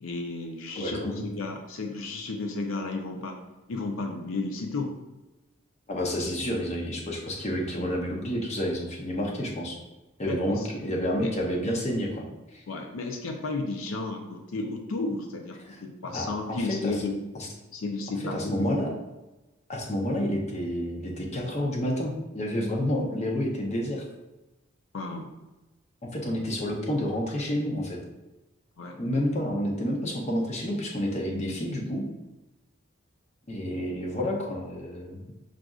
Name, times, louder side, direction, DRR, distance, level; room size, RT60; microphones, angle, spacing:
voice 1, 0.0-1.0 1.4-3.4 3.7-4.9 10.2-10.7 11.2-11.3 12.7-17.2 17.7-18.8 24.9-25.3 28.8-29.0, left 3 dB, 80° left, 3 dB, 0.5 m, -33 dB
voice 2, 0.7-1.3 5.9-9.8 10.2-12.2 12.5-12.6 15.6-15.8 16.1-17.0 17.3-17.5 18.3-18.9 19.7-24.0 26.0-28.0 29.0-32.0 33.5-35.2, equal, 35° left, 0 dB, 0.6 m, -29 dB
6.1 x 2.5 x 2.3 m, 1.1 s
head